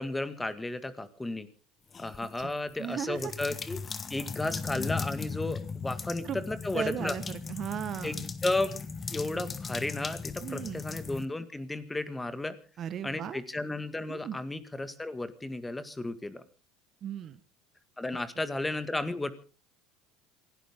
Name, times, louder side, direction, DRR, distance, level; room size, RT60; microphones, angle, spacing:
voice 1, 0.0-1.5 2.0-3.8 4.1-7.2 8.0-8.8 9.1-12.6 13.0-16.4 18.0-19.3, left 2 dB, 10° left, 12 dB, 1.9 m, -33 dB
sound 1, 1.9-2.5 3.1-11.2, left 5 dB, 30° left, 1.3 m, -38 dB
voice 2, 2.8-3.3 6.2-6.4 6.7-8.2 10.4-10.8 12.8-13.4 14.1-14.4 17.0-17.4, right 9 dB, 45° right, 13 dB, 1.3 m, -36 dB
27.5 x 11.5 x 3.7 m, 0.38 s
hypercardioid pair, 75°, 0 cm